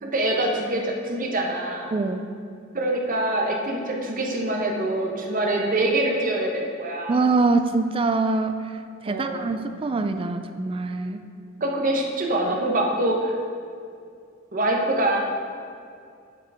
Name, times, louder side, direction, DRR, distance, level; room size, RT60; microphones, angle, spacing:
voice 1, 0.0-1.9 2.7-7.2 9.0-9.6 11.6-13.4 14.5-15.2, right 1 dB, 45° right, 0 dB, 1.1 m, -25 dB
voice 2, 1.9-2.3 7.1-8.6 9.0-11.2, right 3 dB, 25° right, 8 dB, 0.4 m, -24 dB
8.1 x 5.9 x 4.9 m, 2.3 s
head